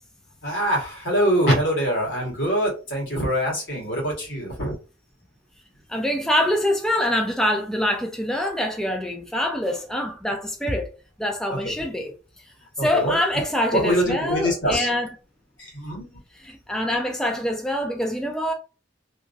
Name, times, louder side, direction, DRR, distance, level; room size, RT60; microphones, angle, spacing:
voice 1, 0.4-4.7 11.6-11.7 12.8-13.2 13.7-14.9 15.6-16.0, equal, 80° left, 1.5 m, -24 dB
voice 2, 5.9-10.9 11.2-12.1 12.8-15.1 16.4-18.5, left 1 dB, 5° left, 0.3 m, -25 dB
2.9 x 2.5 x 2.5 m
head